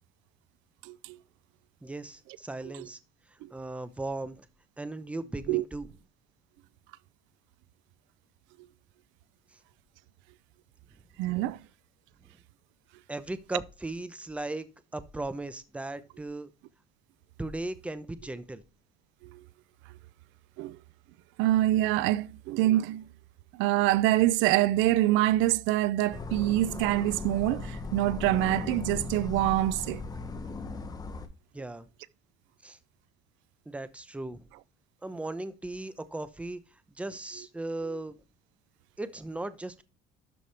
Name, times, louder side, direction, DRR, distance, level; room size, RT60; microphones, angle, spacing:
voice 1, 0.8-1.2 3.4-3.5 5.5-5.6 11.2-11.6 19.3-19.4 20.6-20.8 21.4-23.0 23.5-30.0, right 15 dB, 80° right, 0.5 m, -25 dB
voice 2, 1.8-3.0 3.5-4.5 4.8-5.9 13.1-14.7 14.9-16.5 17.4-18.6 31.5-31.9 32.6-32.8 33.7-34.5 35.0-36.6 37.0-38.2 39.0-39.8, right 2 dB, 5° right, 0.8 m, -37 dB
sound 1, 26.1-31.3, left 3 dB, 20° left, 1.1 m, -37 dB
12.5 x 4.8 x 3.3 m
cardioid pair, 140°, 19 cm